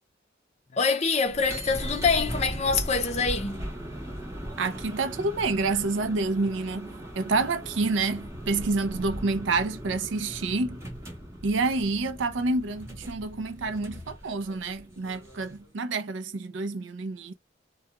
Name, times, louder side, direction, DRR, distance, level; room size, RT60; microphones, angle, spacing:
voice 1, 0.7-3.6, left 4 dB, 35° left, 0.6 m, -25 dB
sound 1, 1.2-15.7, equal, 15° right, 0.9 m, -38 dB
voice 2, 4.6-10.8 11.4-17.3, right 3 dB, 80° right, 0.5 m, -28 dB
2.3 x 2.3 x 2.8 m
head